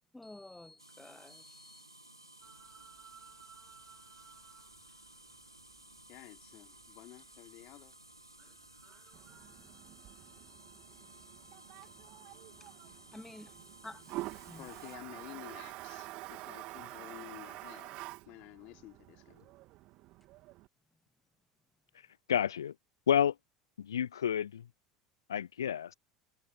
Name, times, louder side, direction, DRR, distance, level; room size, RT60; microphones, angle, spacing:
voice 1, 0.1-1.9 13.1-13.5 13.8-14.0 14.5-14.7, left 2 dB, 5° left, 1.1 m, -50 dB
sound 1, 0.8-15.0, right 1 dB, 90° right, 2.2 m, -57 dB
sound 2, 2.4-10.5, right 8 dB, 30° right, 8.0 m, -62 dB
voice 2, 6.1-7.9 14.5-18.0 18.3-19.5, left 22 dB, 50° left, 3.7 m, -51 dB
Toilet flush, 9.1-20.7, right 19 dB, 50° right, 3.0 m, -48 dB
voice 3, 21.9-22.7 23.1-23.4 23.8-24.7 25.3-25.9, left 9 dB, 75° left, 0.6 m, -30 dB
figure-of-eight pair, 70°, 2 cm